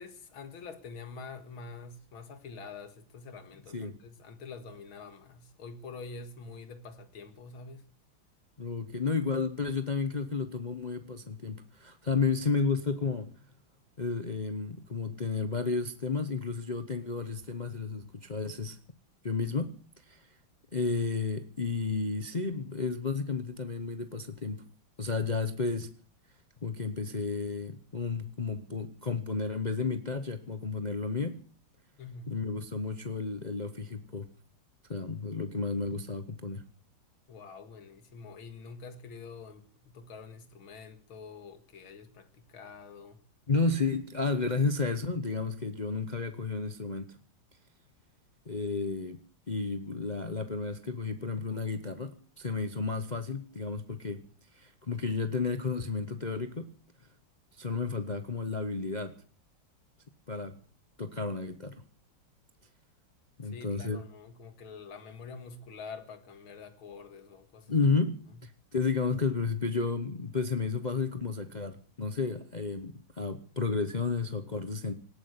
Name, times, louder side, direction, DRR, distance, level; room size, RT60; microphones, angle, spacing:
voice 1, 0.0-7.8 32.0-32.3 37.3-43.2 63.4-67.7 68.3-68.4, left 4 dB, 85° left, 2.6 m, -46 dB
voice 2, 8.6-13.3 14.0-18.8 19.2-19.7 20.1-20.3 20.7-24.6 25.0-25.9 26.6-31.4 32.3-34.3 34.9-36.6 43.5-47.2 48.5-49.2 49.5-54.2 54.5-56.7 57.6-59.1 60.3-60.6 61.0-61.8 63.4-64.0 67.7-74.9, left 4 dB, 35° left, 0.8 m, -32 dB
18.5 x 9.7 x 8.2 m
omnidirectional pair, 2.2 m